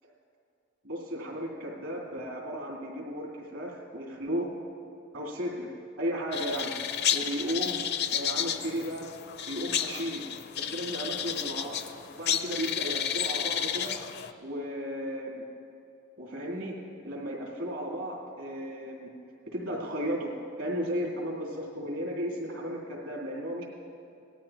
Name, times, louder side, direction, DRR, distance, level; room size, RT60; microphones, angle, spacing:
voice 1, 0.8-4.5 5.1-6.7 7.1-7.8 8.1-9.1 9.5-10.3 10.6-11.8 12.2-14.0 14.4-15.5 16.2-19.1 19.5-23.6, equal, 70° right, -3 dB, 3.2 m, -34 dB
sound 1, 6.3-14.3, left 9 dB, 50° left, 0.5 m, -32 dB
19.0 x 13.5 x 3.0 m, 2.7 s
head